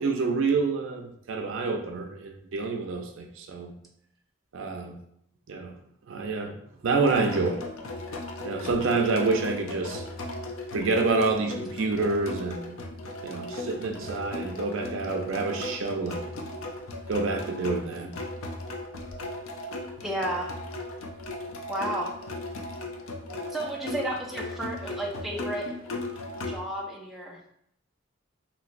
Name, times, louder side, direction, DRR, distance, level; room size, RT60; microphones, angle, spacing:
voice 1, 0.0-3.7 4.5-5.0 5.5-5.8 6.1-6.5 6.8-7.6 8.4-10.0 10.7-12.8 13.2-16.2 17.1-18.1, right 3 dB, 75° right, 3 dB, 0.5 m, -28 dB
sound 1, 7.1-26.6, left 2 dB, 85° left, 0.5 m, -37 dB
voice 2, 20.0-20.5 21.7-22.1 23.5-25.7 26.4-27.4, right 1 dB, ahead, -3 dB, 0.4 m, -32 dB
3.1 x 3.0 x 2.5 m, 0.72 s
head